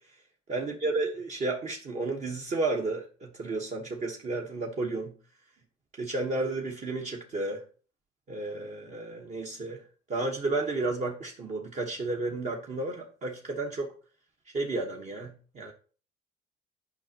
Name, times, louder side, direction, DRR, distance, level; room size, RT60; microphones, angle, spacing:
voice 1, 0.5-5.1 6.0-7.6 8.3-9.8 10.1-13.9 14.5-15.7, right 2 dB, 45° right, 1.1 m, -32 dB
8.5 x 5.2 x 2.8 m
cardioid pair, 110°, 17 cm